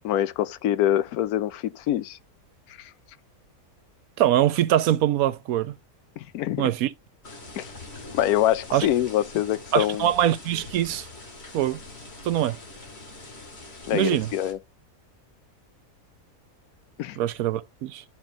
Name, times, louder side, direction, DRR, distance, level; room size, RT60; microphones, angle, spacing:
voice 1, 0.0-2.2 2.8-2.9 6.2-6.6 7.6-7.7 8.1-10.1 13.9-14.6 17.0-17.2, left 12 dB, 90° left, 1.1 m, -25 dB
voice 2, 4.2-5.8 6.6-6.9 8.7-8.9 9.7-11.1 11.5-11.8 12.2-12.6 13.9-14.3 17.2-18.0, right 12 dB, 75° right, 1.1 m, -23 dB
sound 1, 7.2-14.5, left 2 dB, 45° left, 2.1 m, -43 dB
12.0 x 4.4 x 2.5 m
omnidirectional pair, 1.5 m